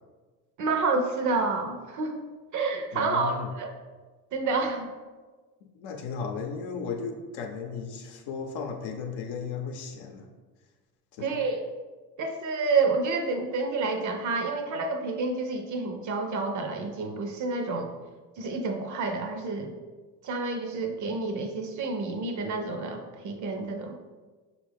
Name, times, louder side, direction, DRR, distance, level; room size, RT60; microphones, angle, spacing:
voice 1, 0.6-2.3 2.5-3.7 4.3-4.9 11.2-11.6 12.2-17.9 18.4-19.7 20.2-24.0, right 3 dB, 40° right, 5 dB, 0.6 m, -29 dB
voice 2, 2.9-3.5 5.6-10.3 11.2-11.4, left 5 dB, 55° left, 4 dB, 0.8 m, -35 dB
5.8 x 2.4 x 3.4 m, 1.4 s
hypercardioid pair, 65°, 48 cm